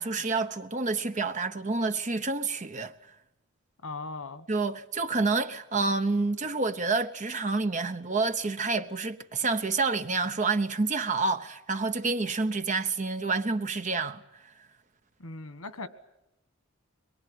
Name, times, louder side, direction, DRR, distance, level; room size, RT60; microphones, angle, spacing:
voice 1, 0.0-2.9 4.5-14.2, right 3 dB, 35° right, 0.9 m, -28 dB
voice 2, 3.8-4.4 15.2-15.9, left 3 dB, 90° left, 1.6 m, -38 dB
22.5 x 22.5 x 9.4 m
head